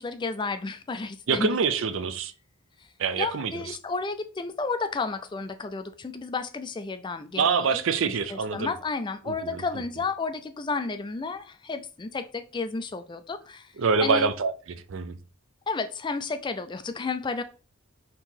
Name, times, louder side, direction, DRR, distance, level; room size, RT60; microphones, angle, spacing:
voice 1, 0.0-1.6 3.2-7.8 8.1-13.7 14.0-14.3 15.7-17.4, left 4 dB, 20° left, 0.3 m, -32 dB
voice 2, 1.3-2.3 3.0-3.8 7.4-8.7 9.3-9.8 13.8-15.2, right 5 dB, 60° right, 0.5 m, -26 dB
4.5 x 2.9 x 3.7 m
head